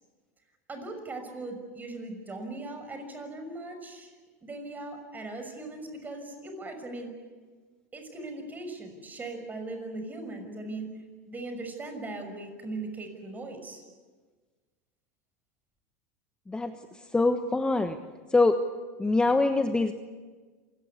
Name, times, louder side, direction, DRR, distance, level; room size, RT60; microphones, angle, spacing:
voice 1, 0.7-4.1 4.4-7.1 7.9-13.8, right 2 dB, 20° right, 7 dB, 6.1 m, -39 dB
voice 2, 17.1-18.0 18.3-18.6 19.0-19.9, left 3 dB, 10° left, 7 dB, 1.2 m, -24 dB
27.5 x 19.0 x 8.4 m, 1.4 s
supercardioid pair, 110°, 9 cm